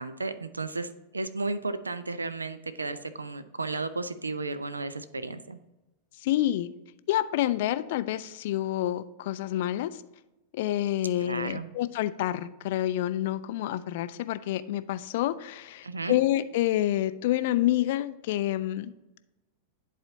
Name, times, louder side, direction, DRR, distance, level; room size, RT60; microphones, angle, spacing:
voice 1, 0.0-5.6 11.2-11.7 15.8-16.2, right 3 dB, 80° right, 12 dB, 0.4 m, -34 dB
voice 2, 6.2-6.7 7.1-10.0 10.5-18.9, left 13 dB, 50° left, 14 dB, 0.3 m, -28 dB
10.5 x 4.2 x 2.7 m, 1.0 s
figure-of-eight pair, 90°, 0 cm